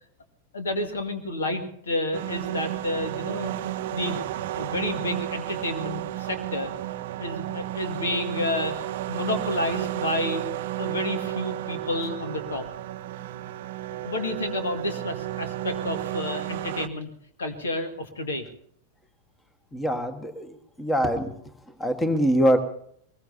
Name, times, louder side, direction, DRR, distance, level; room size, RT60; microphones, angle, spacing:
voice 1, 0.5-3.5 3.9-6.7 7.2-8.8 9.1-12.7 14.0-17.1 17.4-18.5, left 1 dB, 70° left, 6 dB, 2.2 m, -30 dB
sound 1, 2.1-16.9, right 13 dB, 55° right, 0.7 m, -32 dB
voice 2, 19.7-21.4 21.8-22.6, equal, 10° left, 9 dB, 1.6 m, -24 dB
22.5 x 21.0 x 2.8 m, 0.64 s
figure-of-eight pair, 90°, 0 cm